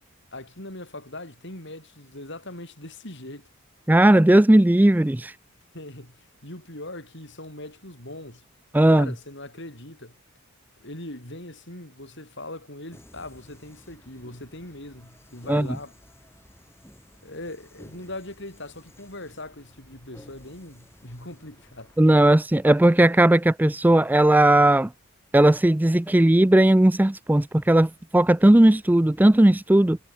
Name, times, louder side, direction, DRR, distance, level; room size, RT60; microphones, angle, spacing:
voice 1, 0.3-3.5 5.7-8.4 8.9-10.2 10.8-16.0 17.2-21.9, left 1 dB, 55° left, 7.9 m, -40 dB
voice 2, 3.9-5.3 8.7-9.1 15.5-15.7 22.0-24.9 25.3-30.0, right 1 dB, 10° right, 0.4 m, -17 dB
sound 1, 12.9-22.2, equal, 10° left, 7.7 m, -53 dB
head